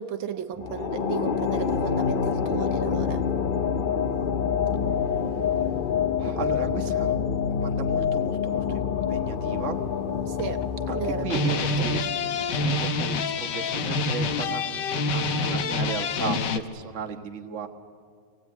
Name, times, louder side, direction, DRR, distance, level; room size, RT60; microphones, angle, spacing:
voice 1, 0.0-3.2 10.3-10.6 10.9-11.9, right 8 dB, 75° right, 7 dB, 1.7 m, -35 dB
sound 1, 0.6-13.1, left 7 dB, 85° left, 0.4 m, -27 dB
voice 2, 6.2-7.2 7.6-8.8 9.1-9.8 10.9-12.0 12.6-17.7, right 6 dB, 40° right, 4 dB, 1.5 m, -35 dB
sound 2, 9.5-9.6 10.2-10.9 11.2-16.6, left 3 dB, 65° left, 1.5 m, -27 dB
26.5 x 19.0 x 9.4 m, 2.2 s
omnidirectional pair, 2.2 m